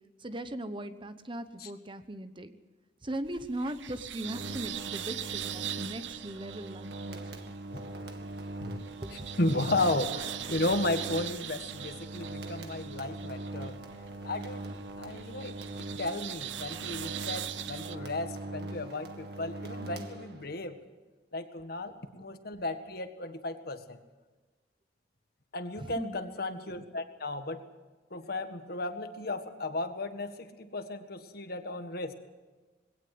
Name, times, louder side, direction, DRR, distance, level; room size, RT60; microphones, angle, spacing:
voice 1, 0.2-2.6 3.0-7.5 9.0-9.2 25.8-26.2, right 1 dB, 25° right, 10 dB, 1.0 m, -39 dB
sound 1, 3.2-18.0, right 11 dB, 80° right, 0.8 m, -41 dB
sound 2, 4.2-20.7, right 2 dB, 60° right, 2.0 m, -42 dB
voice 2, 9.4-13.7 14.2-14.6 15.0-20.8 21.3-24.0 25.5-27.6 28.1-32.1, left 2 dB, 55° left, 8 dB, 1.7 m, -34 dB
21.5 x 17.0 x 7.8 m, 1.3 s
head